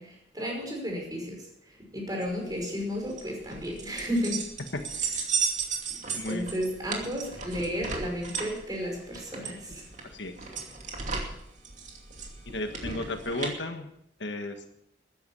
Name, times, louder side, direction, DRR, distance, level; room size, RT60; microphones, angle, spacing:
voice 1, 0.0-1.4 1.7-4.4 6.3-9.8, equal, 20° right, 0 dB, 5.3 m, -33 dB
sound 1, 2.2-13.5, right 5 dB, 40° right, 2.6 m, -35 dB
voice 2, 6.1-6.4 10.1-10.3 12.5-13.9 14.2-14.5, left 2 dB, 65° left, 6 dB, 1.5 m, -33 dB
14.0 x 10.5 x 7.0 m, 0.76 s
head